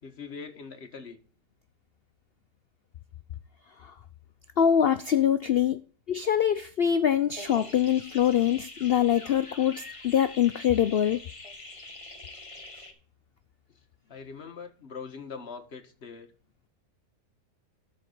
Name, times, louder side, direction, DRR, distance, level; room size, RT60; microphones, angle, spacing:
voice 1, 0.0-1.2 14.1-16.3, left 5 dB, 40° left, 1.6 m, -42 dB
voice 2, 4.6-5.8 6.1-11.2, left 9 dB, 80° left, 0.5 m, -24 dB
sound 1, 7.4-12.9, left 2 dB, 20° left, 1.4 m, -44 dB
12.5 x 4.3 x 7.9 m
omnidirectional pair, 1.7 m